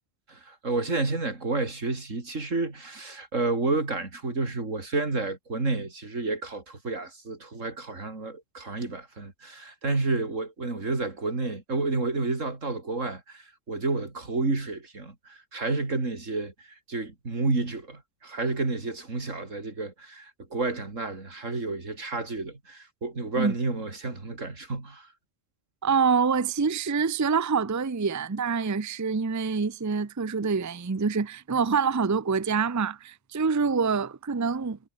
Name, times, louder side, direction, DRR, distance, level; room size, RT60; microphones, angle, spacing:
voice 1, 0.3-25.1, right 3 dB, 85° right, 4.0 m, -30 dB
voice 2, 25.8-34.8, right 5 dB, 20° right, 0.5 m, -26 dB
omnidirectional pair, 1.3 m